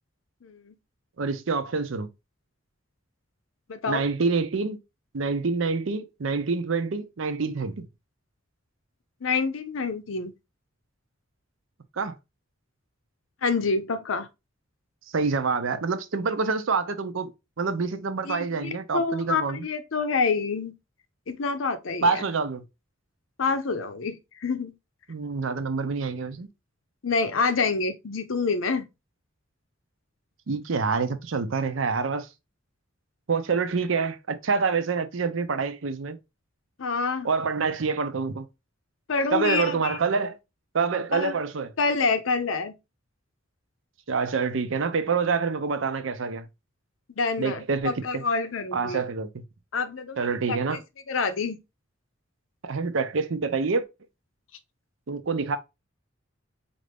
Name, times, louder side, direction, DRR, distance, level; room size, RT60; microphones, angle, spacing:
voice 1, 0.4-0.7 3.7-4.0 9.2-10.3 13.4-14.3 18.3-20.7 21.3-22.3 23.4-24.7 27.0-28.9 36.8-37.3 39.1-40.0 41.1-41.4 41.8-42.7 47.2-49.0 49.7-50.8 51.1-51.6, left 4 dB, 80° left, 0.6 m, -27 dB
voice 2, 1.2-2.1 3.9-4.8 5.1-7.8 12.0-12.2 15.1-17.3 17.6-19.6 22.0-22.6 25.1-26.5 30.5-32.3 33.3-36.2 37.2-38.5 39.3-40.4 40.7-41.7 44.1-46.5 47.4-48.2 48.7-49.4 50.2-50.8 52.6-53.8 55.1-55.6, right 4 dB, 75° right, 0.6 m, -26 dB
4.3 x 2.6 x 3.4 m
head